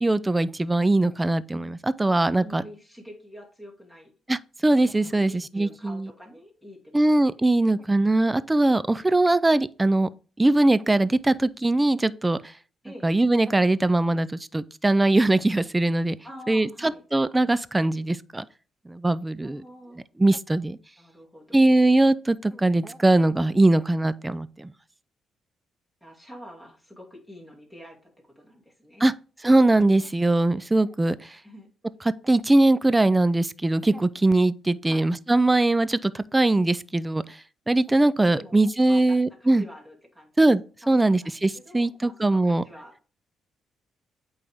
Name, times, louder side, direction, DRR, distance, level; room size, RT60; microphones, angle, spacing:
voice 1, 0.0-2.6 4.3-6.1 6.9-10.1 10.4-12.5 13.0-16.2 16.5-18.5 18.9-19.6 20.2-20.8 21.5-24.7 29.0-29.1 29.4-31.4 32.2-37.4 37.7-39.6 40.4-40.6 40.9-42.6, right 2 dB, 15° right, 0.4 m, -21 dB
voice 2, 2.4-4.1 5.0-7.7 12.8-13.1 16.2-17.0 19.4-20.0 21.0-21.8 26.0-29.1 31.4-31.7 34.8-35.1 38.4-40.3 40.8-43.0, equal, ahead, 2.4 m, -46 dB
8.5 x 3.4 x 3.5 m
cardioid pair, 90°, 0 cm